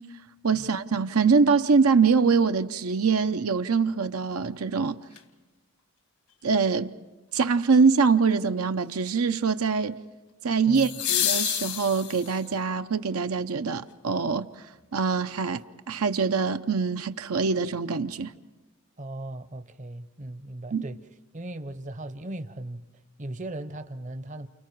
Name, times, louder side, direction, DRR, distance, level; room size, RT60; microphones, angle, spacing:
voice 1, 0.4-5.0 6.4-6.9 7.3-10.0 10.4-14.5 14.9-18.3 20.7-20.8, right 5 dB, 80° right, 0.7 m, -24 dB
sound 1, 5.1-5.2 10.7-12.5 14.7-14.8, left 11 dB, 75° left, 1.6 m, -28 dB
voice 2, 19.0-21.0 21.3-22.8 23.2-24.5, right 1 dB, 35° right, 0.7 m, -37 dB
29.5 x 29.5 x 4.7 m
head